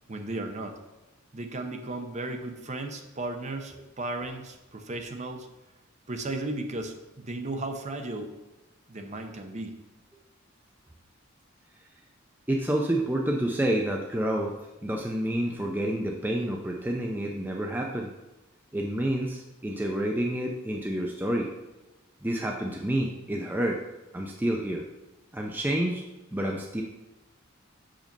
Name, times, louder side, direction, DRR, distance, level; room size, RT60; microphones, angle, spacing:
voice 1, 0.1-0.8 1.3-5.5 6.1-8.3 8.9-9.7, right 2 dB, 35° right, 5 dB, 0.8 m, -35 dB
voice 2, 12.5-14.5 14.8-18.1 18.7-21.5 22.2-23.8 24.1-24.8 25.3-26.0 26.3-26.8, right 1 dB, 10° right, 0 dB, 0.5 m, -28 dB
6.3 x 5.1 x 5.3 m, 1.1 s
head